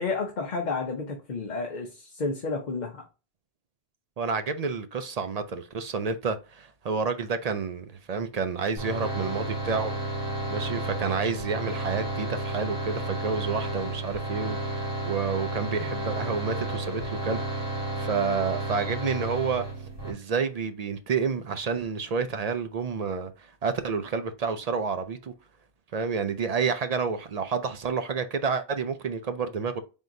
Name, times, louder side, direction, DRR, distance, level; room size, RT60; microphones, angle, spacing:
voice 1, 0.0-3.0, left 4 dB, 50° left, 0.8 m, -31 dB
voice 2, 4.2-9.9 10.5-17.4 17.7-19.7 20.0-25.3 25.9-29.8, right 5 dB, 50° right, 0.5 m, -29 dB
sound 1, 8.8-20.1, right 2 dB, 25° right, 2.2 m, -32 dB
4.4 x 3.6 x 2.6 m
omnidirectional pair, 1.1 m